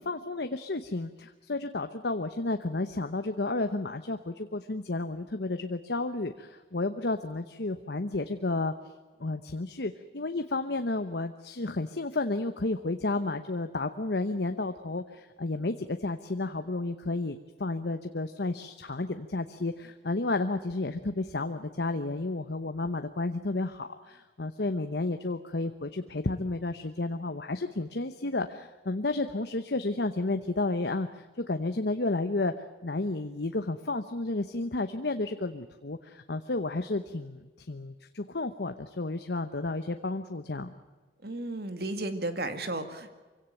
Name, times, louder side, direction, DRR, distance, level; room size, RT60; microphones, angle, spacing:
voice 1, 0.0-8.7 9.2-32.5 32.8-40.7, left 2 dB, 65° left, 8 dB, 1.0 m, -32 dB
voice 2, 41.2-43.1, right 2 dB, 60° right, 8 dB, 2.2 m, -34 dB
24.5 x 17.0 x 9.1 m, 1.3 s
head